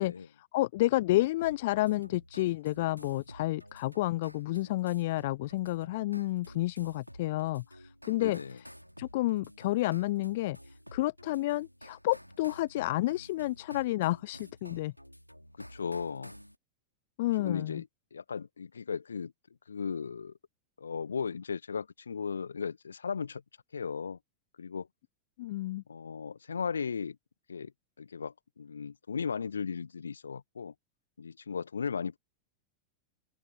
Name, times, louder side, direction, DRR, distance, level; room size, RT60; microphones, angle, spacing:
voice 1, 0.0-8.4 9.0-14.9 17.2-17.8 25.4-25.8, left 17 dB, 55° left, 0.3 m, -30 dB
sound 1, 1.4-16.5, equal, 90° left, 2.6 m, -52 dB
voice 2, 8.2-8.6 15.6-16.3 17.4-17.9 18.1-19.3 19.7-20.3 20.8-23.4 23.7-24.2 24.6-24.9 25.9-27.2 27.5-27.7 28.0-30.7 31.2-32.2, left 6 dB, 75° left, 1.4 m, -36 dB
open air
figure-of-eight pair, 90°, 0 cm